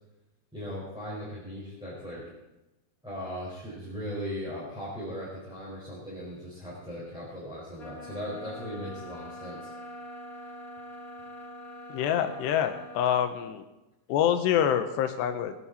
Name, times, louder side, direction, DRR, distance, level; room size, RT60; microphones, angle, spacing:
voice 1, 0.5-2.2 3.0-9.7, equal, ahead, -8 dB, 4.6 m, -38 dB
sound 1, 7.8-13.3, equal, 35° left, 1.6 m, -44 dB
voice 2, 11.9-13.6 14.1-15.6, left 9 dB, 85° left, 8 dB, 3.1 m, -26 dB
22.0 x 11.0 x 4.3 m, 0.98 s
omnidirectional pair, 4.9 m